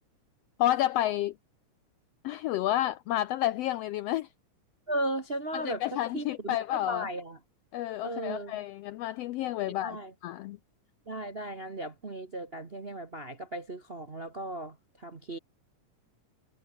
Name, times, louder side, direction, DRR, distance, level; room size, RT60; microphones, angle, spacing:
voice 1, 0.6-1.3 2.2-4.3 5.5-7.1 7.7-10.6, left 14 dB, 80° left, 1.4 m, -30 dB
voice 2, 4.9-7.4 8.0-8.6 9.8-10.1 11.1-15.4, right 1 dB, 40° right, 0.9 m, -36 dB
omnidirectional pair, 3.4 m